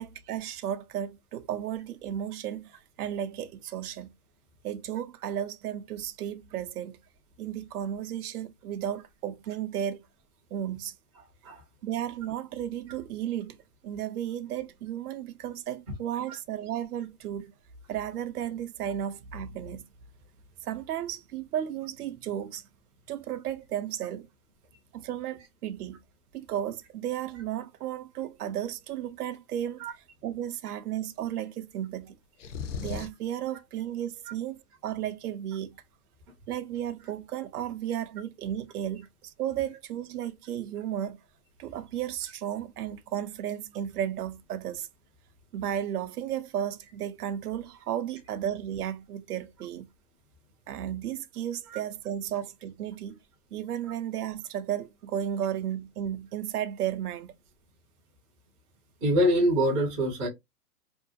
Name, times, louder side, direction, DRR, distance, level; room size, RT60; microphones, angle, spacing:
voice 1, 0.0-4.1 4.6-7.0 7.4-10.0 10.5-10.9 11.8-13.6 13.8-17.5 17.9-19.9 20.6-22.6 23.1-24.3 24.9-26.0 26.3-29.9 30.2-32.2 32.8-35.8 36.5-41.2 41.6-44.9 45.5-49.9 50.7-53.2 53.5-57.3, right 10 dB, 75° right, 0.6 m, -34 dB
sound 1, 32.4-33.3, left 6 dB, 50° left, 0.5 m, -36 dB
voice 2, 59.0-60.3, equal, 10° right, 0.5 m, -24 dB
2.7 x 2.3 x 2.5 m
hypercardioid pair, 150°, 47 cm